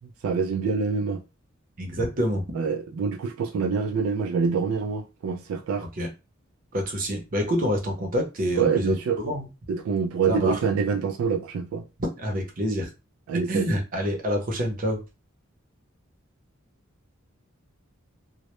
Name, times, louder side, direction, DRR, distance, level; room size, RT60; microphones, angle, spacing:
voice 1, 0.2-1.2 2.5-5.9 8.5-9.2 9.7-11.8 13.3-13.7, right 5 dB, 80° right, 0.3 m, -26 dB
voice 2, 1.8-2.4 6.0-6.1 6.7-9.5 10.3-10.6 12.2-12.9 13.5-15.0, equal, 40° right, 0.6 m, -27 dB
2.1 x 2.0 x 2.9 m
head